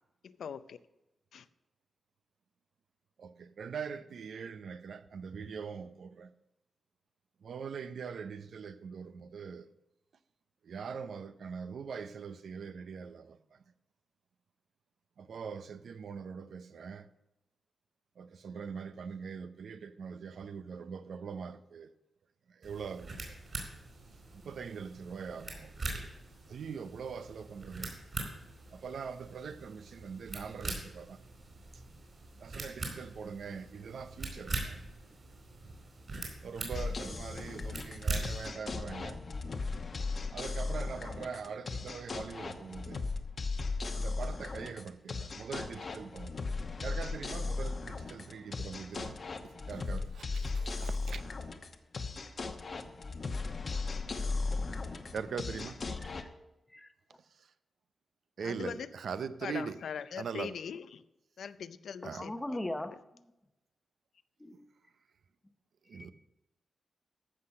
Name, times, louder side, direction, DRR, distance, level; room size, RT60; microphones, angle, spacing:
voice 1, 0.4-0.8 1.3-1.4 58.4-58.9 59.4-61.0 61.4-62.3, left 7 dB, 80° left, 14 dB, 0.5 m, -41 dB
voice 2, 3.2-6.3 7.4-9.7 10.6-13.4 15.2-17.1 18.2-21.9 22.6-23.3 24.4-25.7 26.5-27.9 28.7-31.2 32.4-34.8 36.4-39.2 40.3-43.0 43.9-46.4 46.8-49.2 49.7-51.3 55.1-55.7 58.4-59.8 60.2-60.5 62.0-62.2 65.9-66.1, right 6 dB, 70° right, 12 dB, 0.6 m, -42 dB
sound 1, 22.6-38.5, right 2 dB, 40° right, 4.3 m, -42 dB
sound 2, 36.7-56.2, left 3 dB, 45° left, 0.9 m, -37 dB
voice 3, 55.9-56.3 56.7-56.9 62.2-63.3 64.4-64.7 65.9-66.1, left 1 dB, 10° left, 9 dB, 0.8 m, -40 dB
14.0 x 5.8 x 6.5 m, 0.92 s
wide cardioid pair, 120°, 0 cm